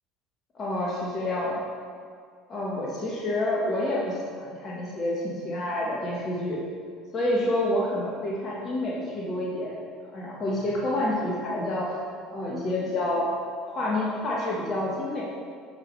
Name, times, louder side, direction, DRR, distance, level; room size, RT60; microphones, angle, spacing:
voice 1, 0.5-1.6 2.5-6.6 7.1-9.7 10.1-12.0 12.3-13.3 13.6-15.2, left 1 dB, 40° left, -4 dB, 1.6 m, -28 dB
11.0 x 6.0 x 3.4 m, 2.2 s
figure-of-eight pair, 65°, 0 cm